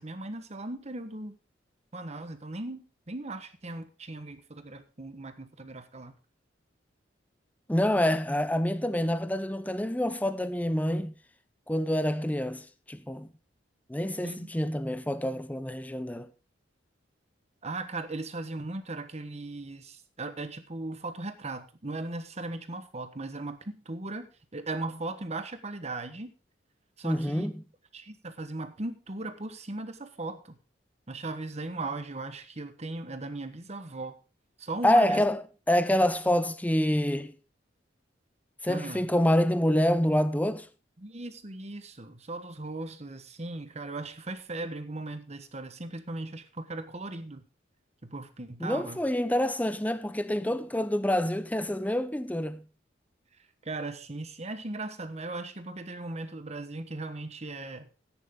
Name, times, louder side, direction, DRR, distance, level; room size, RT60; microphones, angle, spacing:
voice 1, 0.0-1.4 1.9-6.1 14.2-14.5 17.6-26.3 27.0-27.5 27.9-30.6 31.1-34.2 34.6-35.2 38.7-39.1 41.0-47.4 48.0-49.0 53.6-57.9, right 2 dB, 35° right, 1.3 m, -38 dB
voice 2, 7.7-11.1 11.7-13.3 13.9-16.3 27.0-27.5 34.8-35.4 35.7-37.3 38.6-40.7 48.6-52.6, left 1 dB, 10° left, 0.7 m, -27 dB
14.0 x 10.0 x 3.7 m
head